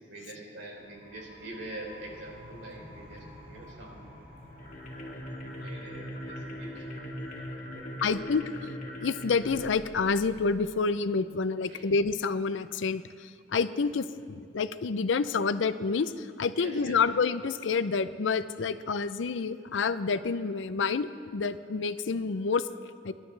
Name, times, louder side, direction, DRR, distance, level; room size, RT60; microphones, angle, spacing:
voice 1, 0.1-4.1 4.9-8.2 11.7-11.9 16.5-17.0, right 2 dB, 85° right, -2 dB, 3.8 m, -45 dB
sound 1, 0.7-12.1, left 1 dB, 45° right, 3.2 m, -53 dB
sound 2, 4.5-10.7, equal, 40° left, 2.1 m, -41 dB
voice 2, 8.0-8.4 9.0-22.7 23.0-23.1, left 4 dB, 80° left, 14 dB, 0.5 m, -28 dB
24.0 x 11.5 x 3.3 m, 2.4 s
head